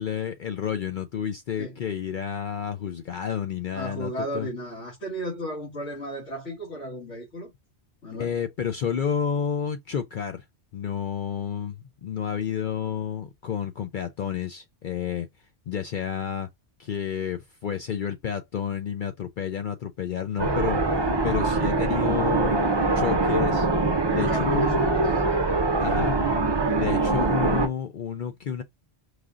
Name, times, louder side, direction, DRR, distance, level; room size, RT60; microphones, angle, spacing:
voice 1, 0.0-4.5 8.1-10.4 10.7-11.8 12.0-15.3 15.7-16.5 16.8-20.8 21.2-22.6 22.9-23.7 24.1-24.9 25.8-26.2 26.7-28.6, left 8 dB, 60° left, 0.6 m, -30 dB
voice 2, 3.7-7.5 8.0-8.3 24.1-26.0 26.6-26.8, equal, 85° left, 2.3 m, -35 dB
sound 1, 20.4-27.7, right 3 dB, 25° right, 0.7 m, -23 dB
4.9 x 2.4 x 3.7 m
omnidirectional pair, 1.2 m